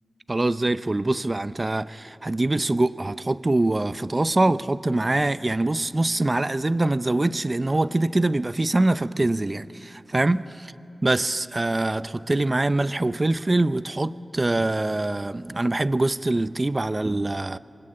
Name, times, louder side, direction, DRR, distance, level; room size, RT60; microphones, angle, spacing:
voice 1, 0.3-10.4 11.0-17.6, right 2 dB, 35° right, 0.7 m, -24 dB
26.5 x 24.0 x 8.8 m
wide cardioid pair, 70°, 0 cm